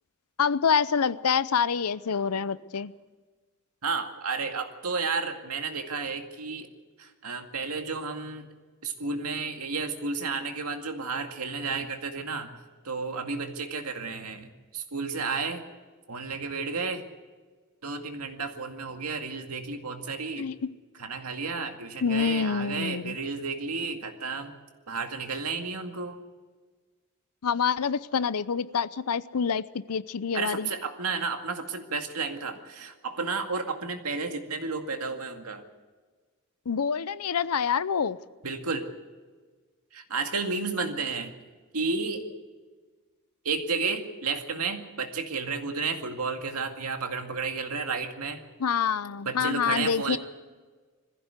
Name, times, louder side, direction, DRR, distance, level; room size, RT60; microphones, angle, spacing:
voice 1, 0.4-2.9 20.4-20.7 22.0-23.2 27.4-30.7 36.7-38.2 48.6-50.2, left 6 dB, 85° left, 0.6 m, -27 dB
voice 2, 3.8-6.7 7.0-8.5 8.8-12.5 12.8-15.6 16.1-17.0 17.8-20.5 21.0-24.5 24.9-26.2 30.3-35.6 38.4-38.9 39.9-41.3 41.7-42.3 43.4-48.4 49.3-50.2, right 4 dB, 90° right, 2.1 m, -32 dB
21.5 x 15.5 x 8.2 m
head